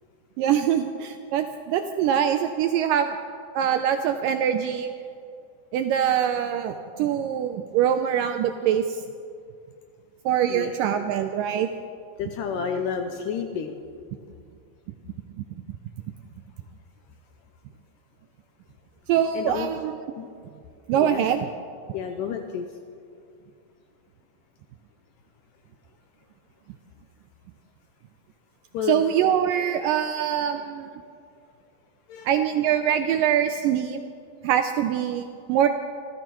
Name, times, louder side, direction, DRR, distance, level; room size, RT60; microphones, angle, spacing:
voice 1, 0.4-3.2 3.5-4.9 5.7-9.0 10.3-11.7 19.1-20.0 20.9-21.5 28.8-30.9 32.3-34.0 34.4-35.7, right 9 dB, 80° right, 7 dB, 1.9 m, -23 dB
voice 2, 12.2-13.8 19.3-19.7 20.1-20.3 21.0-21.2 21.9-22.7 28.7-29.0 32.1-32.3, left 7 dB, 80° left, 5 dB, 2.0 m, -30 dB
26.5 x 14.0 x 3.0 m, 2.4 s
omnidirectional pair, 4.3 m